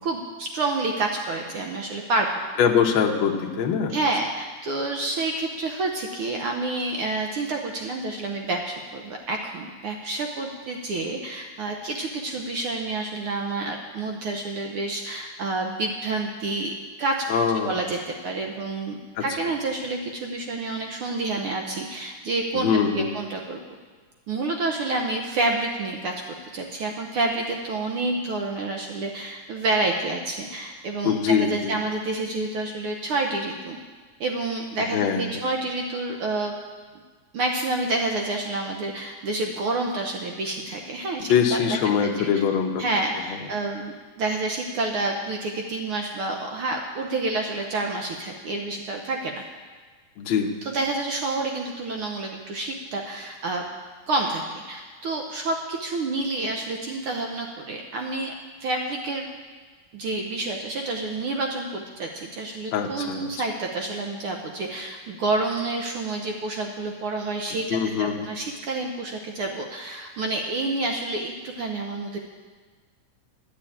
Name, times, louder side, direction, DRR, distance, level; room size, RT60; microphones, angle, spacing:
voice 1, 0.0-2.3 3.9-16.7 17.0-17.2 17.6-22.7 22.9-23.6 24.3-26.1 26.5-33.8 34.2-36.5 37.3-41.6 42.8-49.4 50.6-53.6 54.1-58.3 58.6-59.2 59.9-72.2, right 2 dB, 70° right, 2 dB, 1.3 m, -28 dB
voice 2, 2.6-4.0 17.3-17.7 19.2-19.3 22.5-23.1 31.0-31.8 34.8-35.3 41.3-42.8 43.3-43.4 50.2-50.6 62.7-63.3 67.7-68.3, left 7 dB, 65° left, 1 dB, 1.2 m, -23 dB
12.0 x 6.9 x 8.6 m, 1.5 s
omnidirectional pair, 3.5 m